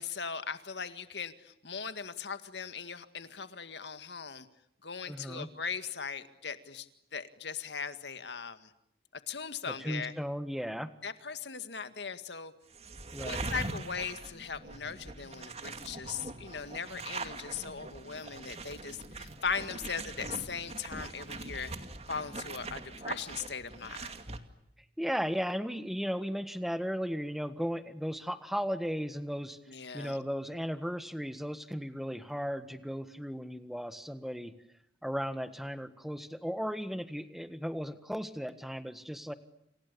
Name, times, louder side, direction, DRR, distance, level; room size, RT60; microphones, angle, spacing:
voice 1, 0.0-4.5 4.8-6.9 7.1-8.7 9.3-10.1 11.0-12.5 13.2-21.7 22.1-24.2 29.7-30.2, left 6 dB, 75° left, 10 dB, 2.0 m, -39 dB
voice 2, 5.1-5.5 9.7-10.9 13.1-13.5 25.0-29.6 29.9-34.5 35.0-39.3, equal, ahead, 11 dB, 1.6 m, -36 dB
sound 1, 12.7-24.4, right 3 dB, 35° right, 2.4 m, -42 dB
30.0 x 28.5 x 7.0 m, 0.77 s
head